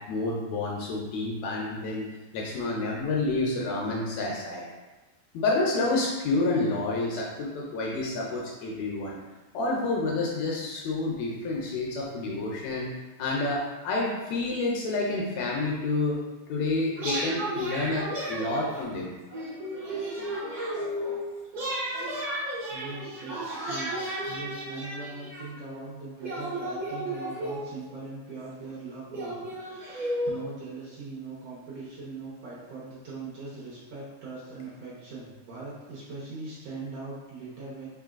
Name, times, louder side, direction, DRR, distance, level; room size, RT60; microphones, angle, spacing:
voice 1, 0.1-2.1 2.3-4.6 5.3-9.2 9.5-12.9 13.2-16.2 16.5-19.1, left 2 dB, 75° left, -2 dB, 1.7 m, -29 dB
sound 1, 16.9-18.9 19.3-21.2 21.5-25.4 26.2-27.9 28.6-28.7 29.1-30.3, right 1 dB, 45° right, 1.1 m, -33 dB
voice 2, 22.7-37.9, right 3 dB, 70° right, -7 dB, 1.6 m, -41 dB
4.4 x 3.3 x 2.4 m, 1.1 s
omnidirectional pair, 3.4 m